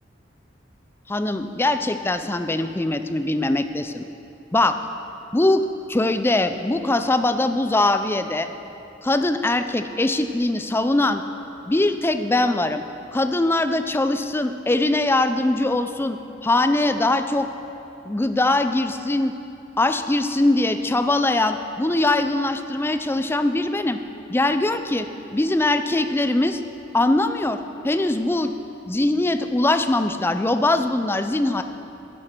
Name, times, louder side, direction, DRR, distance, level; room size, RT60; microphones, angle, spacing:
voice 1, 1.1-4.0 4.5-4.8 5.3-8.5 9.0-11.2 11.7-12.8 13.1-17.5 18.0-19.3 19.8-24.0 24.3-26.6 26.9-28.5 28.9-31.6, left 2 dB, 10° left, 9 dB, 0.4 m, -22 dB
11.5 x 7.7 x 5.9 m, 2.9 s
head